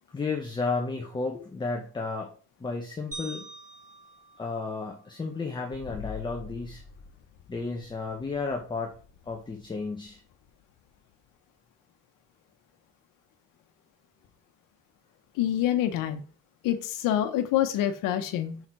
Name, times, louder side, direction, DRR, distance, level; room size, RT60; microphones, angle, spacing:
voice 1, 0.1-2.3 2.6-3.5 4.4-6.8 7.5-8.9 9.2-10.2, left 4 dB, 15° left, 2 dB, 0.9 m, -32 dB
sound 1, 3.1-5.5, right 2 dB, 25° right, 1.5 m, -45 dB
sound 2, 5.7-11.3, left 7 dB, 50° left, 0.7 m, -46 dB
voice 2, 15.3-16.2 16.6-18.7, left 11 dB, 80° left, 8 dB, 1.1 m, -26 dB
5.8 x 4.2 x 4.6 m, 0.41 s
cardioid pair, 140°, 32 cm